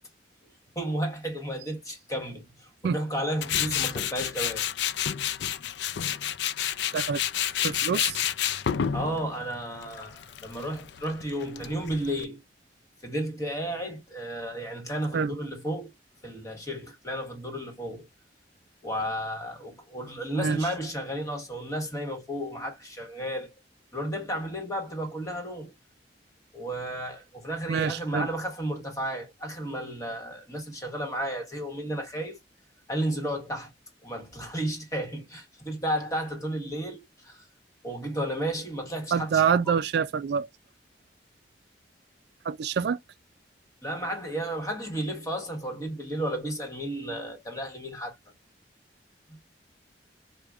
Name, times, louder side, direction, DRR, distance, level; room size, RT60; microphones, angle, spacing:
voice 1, 0.7-4.7 8.9-12.4 13.0-15.9 16.2-18.1 18.8-23.5 23.9-25.7 26.5-32.4 32.9-33.7 34.0-37.4 37.8-39.8 43.8-48.1, right 1 dB, 20° left, 1.2 m, -33 dB
Tools, 3.4-12.2, left 10 dB, 70° left, 0.4 m, -30 dB
voice 2, 7.6-8.2 15.1-15.3 20.4-20.6 27.7-28.3 39.1-40.5 42.4-43.0, right 6 dB, 65° right, 0.3 m, -26 dB
4.9 x 2.2 x 2.3 m
head